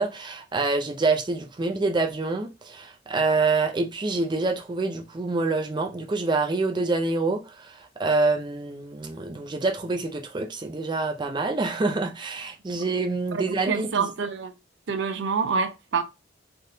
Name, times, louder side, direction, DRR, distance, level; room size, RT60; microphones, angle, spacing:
voice 1, 0.0-14.1, right 3 dB, 25° right, 0.4 m, -26 dB
voice 2, 13.3-14.5 14.9-16.0, right 5 dB, 90° right, 0.5 m, -27 dB
3.5 x 2.4 x 2.7 m
head